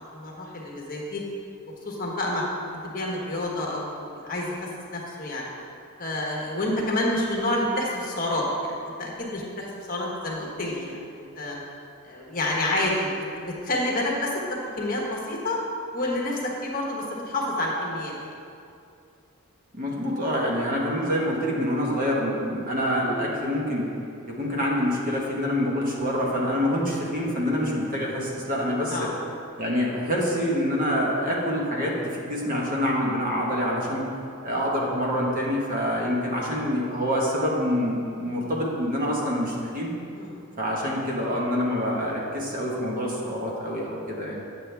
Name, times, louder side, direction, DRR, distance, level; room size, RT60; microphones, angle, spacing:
voice 1, 0.1-1.2 1.8-2.4 2.9-4.6 4.9-5.4 6.0-11.6 12.0-14.4 14.8-15.6 15.9-18.2 28.9-29.2 38.3-38.4 40.1-40.3, left 1 dB, 40° left, -2 dB, 1.3 m, -28 dB
voice 2, 19.7-23.9 24.3-29.1 29.6-34.1 34.4-39.9 40.6-44.4, equal, 40° right, -3 dB, 1.4 m, -26 dB
8.9 x 7.6 x 3.4 m, 2.5 s
head